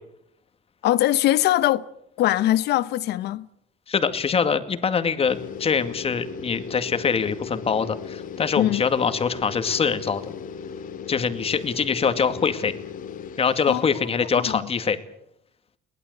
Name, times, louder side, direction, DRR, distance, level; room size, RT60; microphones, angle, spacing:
voice 1, 0.8-1.9 2.2-3.5 8.6-8.8 13.7-14.7, left 14 dB, 80° left, 1.1 m, -22 dB
voice 2, 3.9-10.2 11.1-12.7 13.4-15.0, left 6 dB, 35° left, 2.2 m, -24 dB
sound 1, 5.3-14.0, left 6 dB, 55° left, 2.2 m, -37 dB
22.0 x 19.5 x 8.0 m
cardioid pair, 110°, 17 cm